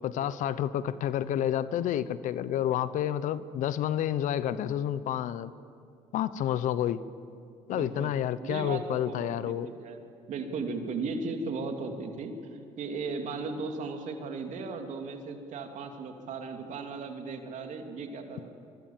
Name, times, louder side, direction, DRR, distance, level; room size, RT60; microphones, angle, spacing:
voice 1, 0.0-5.5 6.1-7.0 7.7-9.7, left 11 dB, 70° left, 15 dB, 0.9 m, -29 dB
voice 2, 7.7-10.0 10.3-18.5, right 4 dB, 65° right, 4 dB, 2.9 m, -36 dB
24.0 x 23.5 x 7.4 m, 2.5 s
supercardioid pair, 75°, 14 cm